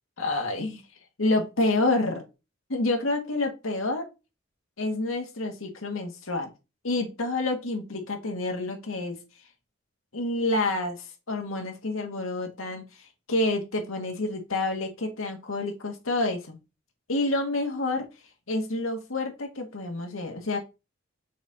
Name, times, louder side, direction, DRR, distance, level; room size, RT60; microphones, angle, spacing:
voice 1, 0.2-0.8 1.2-2.2 2.7-4.1 4.8-6.5 6.8-9.2 10.1-12.8 13.3-16.6 17.1-18.1 18.5-20.6, left 2 dB, 85° left, 4 dB, 1.6 m, -28 dB
5.9 x 4.2 x 4.0 m, 0.27 s
head